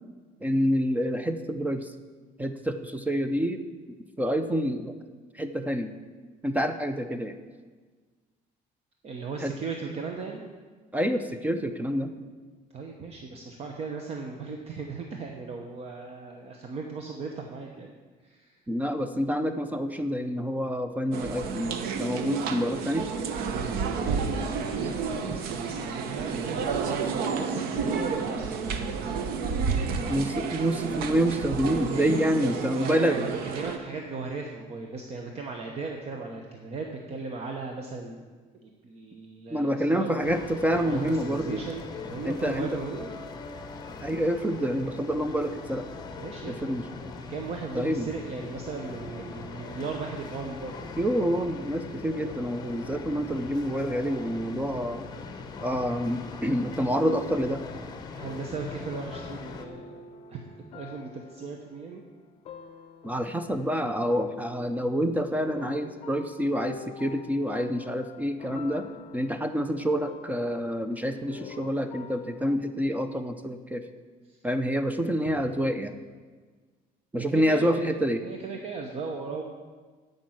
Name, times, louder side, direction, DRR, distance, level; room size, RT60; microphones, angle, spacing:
voice 1, 0.4-1.9 2.4-3.6 4.2-5.0 5.3-5.9 6.4-7.4 9.4-9.5 10.9-12.1 18.7-23.1 30.1-33.2 39.5-41.6 42.2-42.7 44.0-45.9 46.5-46.8 47.7-48.1 51.0-55.1 55.6-57.6 63.0-68.9 69.1-73.9 74.4-76.0 77.1-78.2, equal, 10° right, 8 dB, 0.5 m, -27 dB
voice 2, 9.0-10.4 12.7-17.9 18.2-18.6 23.4-29.1 32.3-38.2 38.6-40.1 40.8-43.1 46.2-46.7 47.3-50.9 58.2-60.0 60.3-60.4 60.7-62.0 74.3-74.4 75.2-75.4 77.3-77.9 78.2-79.4, right 4 dB, 40° right, 2 dB, 0.9 m, -37 dB
sound 1, 21.1-33.8, right 5 dB, 85° right, 0.9 m, -30 dB
sound 2, 40.2-59.7, left 4 dB, 25° left, 1.0 m, -41 dB
sound 3, 52.9-58.7 59.1-72.6, left 7 dB, 45° left, 0.7 m, -48 dB
11.5 x 5.3 x 7.8 m, 1.4 s
cardioid pair, 155°, 15 cm